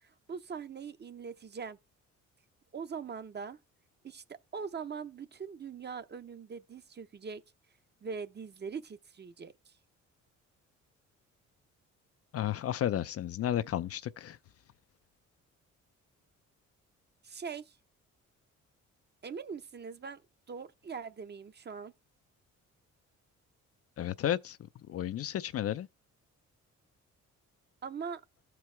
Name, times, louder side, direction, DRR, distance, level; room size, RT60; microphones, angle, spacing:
voice 1, 0.0-1.8 2.7-3.6 4.0-7.4 8.0-9.7 17.2-17.8 19.2-20.2 20.5-21.9 27.8-28.2, right 6 dB, 35° right, 0.8 m, -42 dB
voice 2, 12.3-14.4 24.0-25.9, left 11 dB, 50° left, 0.5 m, -33 dB
14.0 x 4.6 x 3.3 m
cardioid pair, 90°, 30 cm